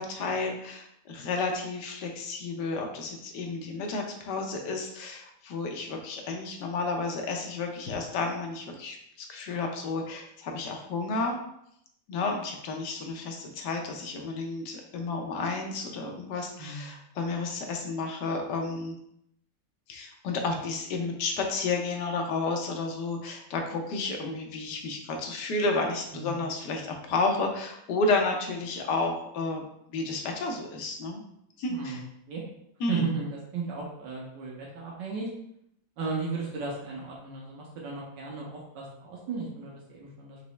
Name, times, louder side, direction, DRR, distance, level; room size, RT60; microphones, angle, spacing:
voice 1, 0.0-11.4 12.1-19.0 19.9-29.6 29.9-31.2 31.6-32.0 32.8-33.1, left 3 dB, 70° left, 3 dB, 1.3 m, -31 dB
voice 2, 16.6-16.9 26.1-26.4 31.7-32.0 32.3-32.4 32.9-35.3 36.0-40.4, right 4 dB, 85° right, -3 dB, 1.5 m, -35 dB
4.5 x 3.0 x 3.1 m, 0.74 s
omnidirectional pair, 1.9 m